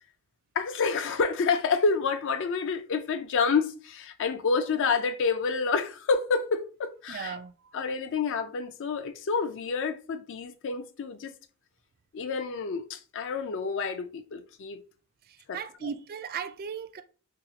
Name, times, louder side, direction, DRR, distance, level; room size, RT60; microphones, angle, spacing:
voice 1, 0.6-7.4 7.7-11.3 12.1-14.8 15.5-15.9, left 5 dB, 55° left, 0.4 m, -28 dB
voice 2, 7.1-7.5 15.5-17.0, right 7 dB, 40° right, 0.3 m, -36 dB
2.9 x 2.4 x 3.9 m
head